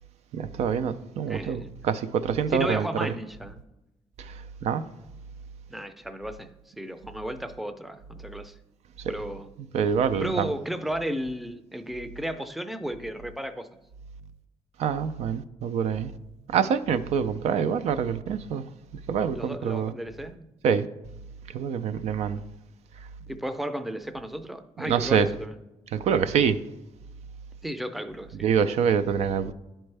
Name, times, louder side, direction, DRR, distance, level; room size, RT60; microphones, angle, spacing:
voice 1, 0.3-3.1 4.2-4.8 9.0-9.1 9.6-10.5 14.8-16.1 16.5-18.7 19.1-19.9 20.6-20.9 21.5-22.4 24.8-25.3 25.9-26.6 28.4-29.5, right 7 dB, 80° right, 0.4 m, -26 dB
voice 2, 1.3-1.7 2.5-3.6 5.7-8.6 9.1-9.5 10.2-13.7 19.3-20.5 23.3-25.5 27.6-28.5, right 1 dB, ahead, 0.4 m, -34 dB
11.0 x 4.4 x 3.3 m
cardioid pair, 110°, 11 cm